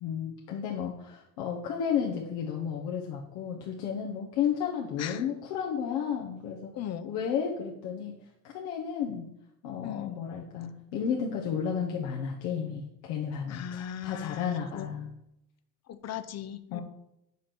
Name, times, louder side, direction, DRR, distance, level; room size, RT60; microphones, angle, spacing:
voice 1, 0.0-6.7 7.0-8.1 8.5-9.3 9.6-15.1 16.7-16.8, left 7 dB, 65° left, -1 dB, 1.2 m, -32 dB
voice 2, 6.7-7.1 9.8-10.2 13.5-14.9 15.9-16.8, left 10 dB, 35° left, 13 dB, 0.7 m, -38 dB
5.5 x 5.1 x 5.9 m, 0.83 s
hypercardioid pair, 65°, 46 cm